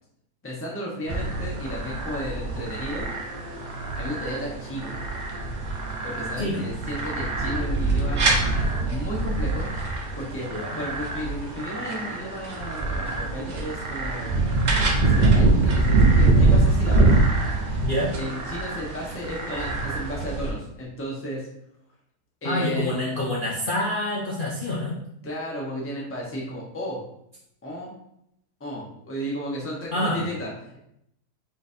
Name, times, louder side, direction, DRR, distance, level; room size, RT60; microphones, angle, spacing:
voice 1, 0.4-3.1 3.9-5.0 6.0-8.2 8.8-9.7 10.2-14.6 15.1-17.1 18.2-21.5 22.4-23.2 25.2-27.0 27.6-27.9 28.6-30.8, equal, 10° left, -4 dB, 0.7 m, -33 dB
sound 1, 1.1-20.5, right 2 dB, 70° right, 0.4 m, -24 dB
voice 2, 10.5-10.8 17.8-18.1 22.4-24.9 29.9-30.2, left 1 dB, 55° left, -5 dB, 0.6 m, -27 dB
4.1 x 3.8 x 2.6 m, 0.75 s
omnidirectional pair, 1.7 m